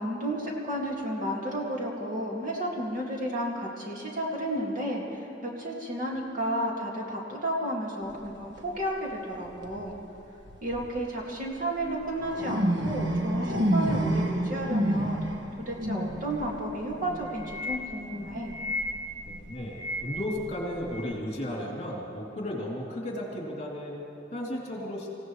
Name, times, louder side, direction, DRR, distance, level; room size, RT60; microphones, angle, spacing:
voice 1, 0.0-10.0 10.6-15.3 15.7-18.6, right 1 dB, 45° right, -2 dB, 2.4 m, -32 dB
sound 1, 8.1-8.3 9.4-9.8 10.5-10.9 11.6-21.2, equal, 70° right, 1.2 m, -30 dB
voice 2, 19.2-25.1, left 1 dB, 35° left, -4 dB, 3.2 m, -34 dB
26.5 x 16.5 x 3.3 m, 3.0 s
head